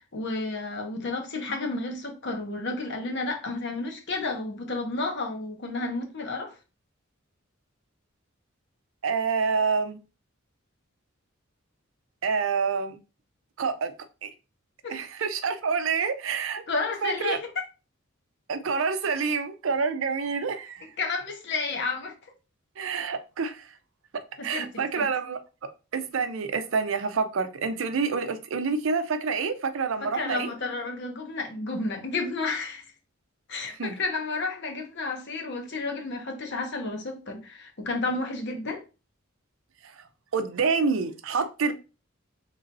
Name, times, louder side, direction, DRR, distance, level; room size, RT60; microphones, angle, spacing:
voice 1, 0.1-6.5 14.8-15.0 16.7-17.5 20.8-22.1 24.4-24.7 25.0-25.1 30.0-32.8 33.5-38.8, left 3 dB, 60° left, 0.9 m, -31 dB
voice 2, 9.0-10.0 12.2-13.0 13.6-13.9 14.2-14.3 14.9-16.6 17.0-17.4 18.5-20.9 22.8-23.7 24.4-25.4 25.9-30.5 33.8-34.0 40.3-41.7, right 5 dB, 75° right, 0.5 m, -27 dB
4.1 x 3.0 x 2.6 m
head